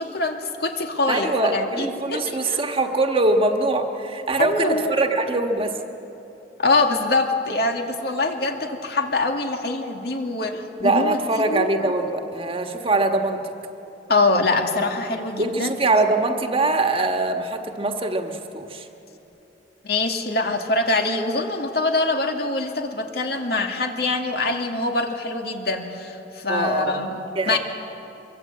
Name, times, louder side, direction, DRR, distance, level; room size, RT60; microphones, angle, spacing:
voice 1, 0.0-2.6 4.4-4.9 6.6-11.9 14.1-15.7 19.8-27.2 27.5-27.6, left 2 dB, 60° left, 3 dB, 2.2 m, -24 dB
voice 2, 1.1-5.8 10.8-13.4 15.4-18.9 26.5-27.0 27.3-27.6, right 2 dB, 30° right, 4 dB, 1.5 m, -23 dB
24.0 x 23.0 x 8.6 m, 3.0 s
head